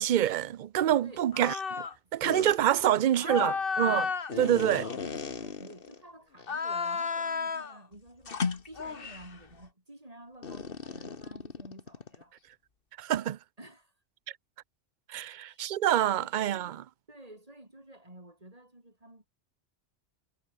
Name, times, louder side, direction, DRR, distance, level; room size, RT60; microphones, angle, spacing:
voice 1, 0.0-1.8 2.1-4.1 4.4-4.8 13.0-13.4 15.1-16.8, right 11 dB, 50° right, 0.6 m, -26 dB
voice 2, 0.9-1.3 2.7-3.7 4.3-12.3 13.6-13.9 15.1-15.6 16.0-16.6 17.1-19.3, right 1 dB, 30° right, 5.2 m, -51 dB
sound 1, 1.3-1.9 2.2-2.6 3.2-6.0 6.4-7.8 8.3-9.3 10.4-12.2, left 5 dB, 55° left, 1.6 m, -33 dB
omnidirectional pair, 1.2 m